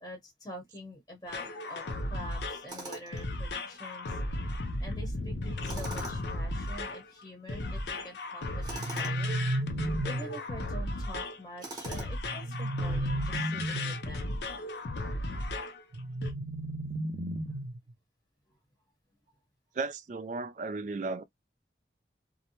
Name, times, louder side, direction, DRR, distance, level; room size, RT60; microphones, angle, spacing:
voice 1, 0.0-4.2 4.8-9.3 10.0-14.4 18.5-18.6, equal, 20° left, 0.8 m, -46 dB
sound 1, 1.3-15.8 16.2-16.3, left 2 dB, 70° left, 0.5 m, -35 dB
Tools, 2.7-3.3 5.6-6.4 8.6-9.2 11.6-12.3, right 2 dB, 25° right, 0.7 m, -42 dB
sound 2, 8.5-10.5 12.2-14.1 15.9-17.9, right 1 dB, 75° right, 0.7 m, -33 dB
voice 2, 19.7-21.2, right 3 dB, 45° right, 0.3 m, -35 dB
2.6 x 2.1 x 2.8 m
head